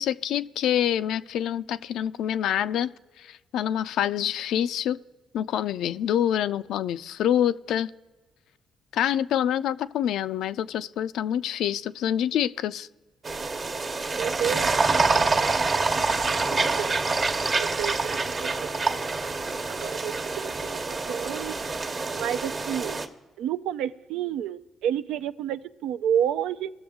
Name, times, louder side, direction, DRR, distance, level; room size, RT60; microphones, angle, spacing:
voice 1, 0.0-2.9 3.2-5.0 5.3-7.9 8.9-12.9, left 10 dB, 80° left, 13 dB, 0.3 m, -26 dB
sound 1, 13.2-23.1, right 3 dB, 35° right, 1.0 m, -26 dB
voice 2, 14.1-15.3 15.7-16.2 16.5-16.9 17.6-19.2 19.7-20.1 20.4-21.6 22.1-23.0 23.4-26.7, right 9 dB, 90° right, 14 dB, 0.4 m, -31 dB
19.0 x 6.9 x 3.6 m, 1.3 s
cardioid pair, 90°, 0 cm